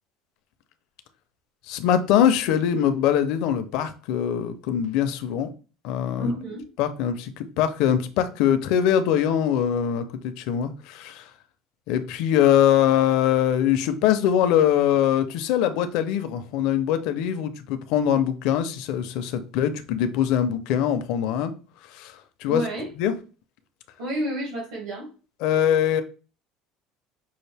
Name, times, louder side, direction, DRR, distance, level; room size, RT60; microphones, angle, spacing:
voice 1, 1.7-5.5 5.8-6.3 6.8-11.3 11.9-21.5 21.9-22.7 23.0-23.1 25.4-26.0, left 10 dB, 60° left, 0.5 m, -22 dB
voice 2, 6.2-6.6 22.4-22.9 24.0-25.1, equal, 75° right, 1.8 m, -30 dB
5.5 x 2.5 x 3.3 m
cardioid pair, 175°, 0 cm